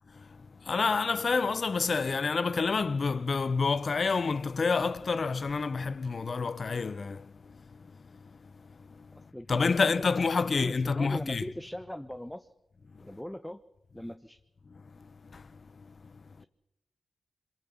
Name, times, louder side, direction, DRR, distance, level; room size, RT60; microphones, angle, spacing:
voice 1, 0.1-11.4 12.9-13.0 14.7-16.3, left 4 dB, 55° left, 0.7 m, -30 dB
voice 2, 9.3-10.3 10.6-12.5 13.0-13.6 13.9-14.4 16.4-16.5, left 1 dB, 10° left, 0.9 m, -40 dB
23.5 x 21.0 x 7.1 m
cardioid pair, 50°, 0 cm